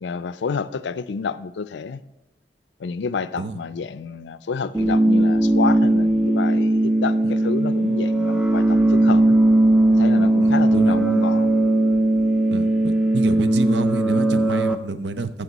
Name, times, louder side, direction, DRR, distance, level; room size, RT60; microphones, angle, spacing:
voice 1, 0.0-2.0 2.8-9.4 9.9-11.5, left 5 dB, 85° left, 0.4 m, -29 dB
sound 1, 4.7-14.7, right 1 dB, 5° right, 0.4 m, -18 dB
voice 2, 10.4-11.0 12.5-15.4, right 3 dB, 80° right, 0.6 m, -28 dB
14.0 x 6.6 x 4.0 m
head